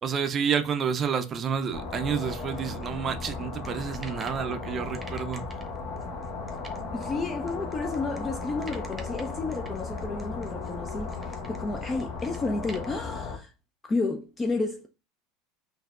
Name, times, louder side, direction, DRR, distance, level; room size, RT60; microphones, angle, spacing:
voice 1, 0.0-5.5, right 7 dB, 35° right, 0.5 m, -29 dB
sound 1, 1.7-13.4, left 4 dB, 55° left, 1.1 m, -36 dB
sound 2, 2.2-4.5 4.9-12.9, right 3 dB, 20° right, 0.9 m, -48 dB
voice 2, 6.9-13.5 13.8-14.9, left 3 dB, 25° left, 0.5 m, -31 dB
5.5 x 2.6 x 2.4 m
hypercardioid pair, 80°, 0 cm